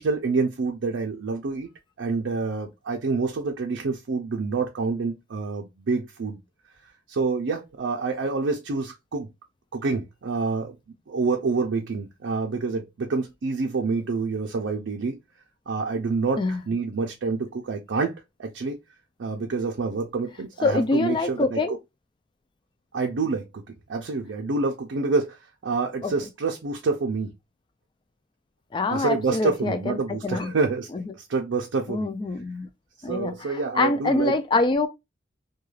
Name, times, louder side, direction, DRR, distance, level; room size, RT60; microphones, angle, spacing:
voice 1, 0.0-1.7 2.0-6.4 7.1-9.3 9.7-10.7 11.1-15.2 15.7-18.8 19.2-21.6 22.9-23.6 23.9-27.3 28.9-30.9 31.2-32.1 33.0-34.3, right 4 dB, 80° right, 0.5 m, -27 dB
voice 2, 20.6-21.8 26.0-26.1 28.7-30.5 30.9-31.1 31.9-32.7 33.0-34.9, left 3 dB, 25° left, 0.3 m, -25 dB
2.3 x 2.3 x 3.1 m
head